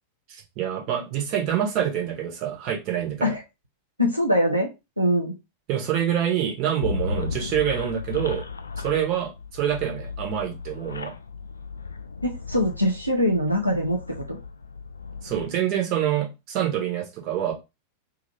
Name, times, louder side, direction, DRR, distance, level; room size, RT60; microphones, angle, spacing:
voice 1, 0.3-3.3 5.7-8.4 8.8-11.1 15.2-17.5, right 10 dB, 40° right, 1 dB, 1.4 m, -26 dB
voice 2, 4.0-4.7 5.0-5.3 12.2-14.0 14.3-14.4, left 1 dB, 90° right, 0 dB, 0.7 m, -22 dB
sound 1, 6.8-15.5, left 5 dB, 75° left, 0.4 m, -35 dB
3.5 x 2.8 x 3.3 m, 0.25 s
figure-of-eight pair, 90°, 0 cm